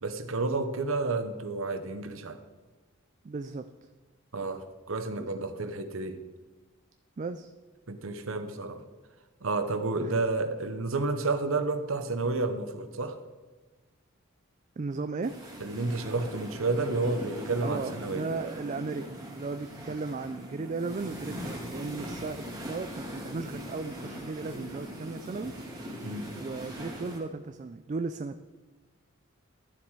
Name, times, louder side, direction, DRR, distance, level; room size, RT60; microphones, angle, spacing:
voice 1, 0.0-2.4 4.3-6.2 7.9-8.8 9.4-13.2 15.6-18.3 26.0-26.3, right 3 dB, 75° right, 9 dB, 0.9 m, -30 dB
voice 2, 3.2-3.7 5.2-5.4 7.2-7.5 10.0-10.1 14.8-15.4 17.6-25.5 26.3-28.5, right 3 dB, 35° right, 9 dB, 0.3 m, -36 dB
sound 1, 15.2-27.2, equal, 15° right, 2.6 m, -41 dB
11.5 x 7.3 x 4.7 m, 1.2 s
head